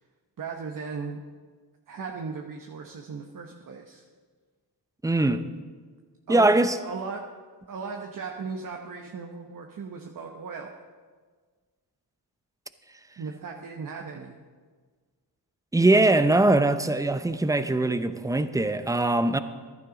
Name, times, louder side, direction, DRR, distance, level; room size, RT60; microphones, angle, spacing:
voice 1, 0.4-1.2 1.9-4.0 6.3-6.5 6.8-7.3 7.7-10.7 13.2-14.4, right 5 dB, 50° right, 1.1 m, -37 dB
voice 2, 5.0-5.4 6.3-6.8 15.7-19.4, right 2 dB, 10° right, 0.6 m, -21 dB
14.5 x 11.0 x 3.9 m
cardioid pair, 75°, 42 cm